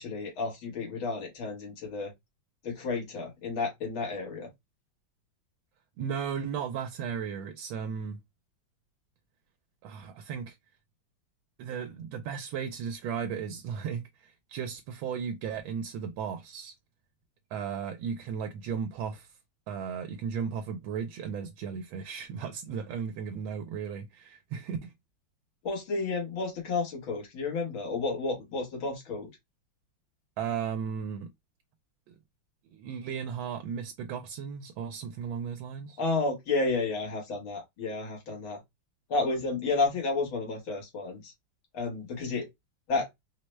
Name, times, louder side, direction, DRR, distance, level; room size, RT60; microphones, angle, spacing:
voice 1, 0.0-2.1 2.6-4.5 25.6-29.3 36.0-38.6 39.1-41.3 41.7-42.5 42.9-43.1, left 3 dB, 90° left, 2.2 m, -31 dB
voice 2, 6.0-8.2 9.8-10.6 11.6-16.7 17.5-19.3 19.7-24.9 30.4-31.3 32.1-32.2 32.7-36.0, right 7 dB, 85° right, 1.4 m, -35 dB
4.7 x 2.2 x 3.1 m
omnidirectional pair, 2.1 m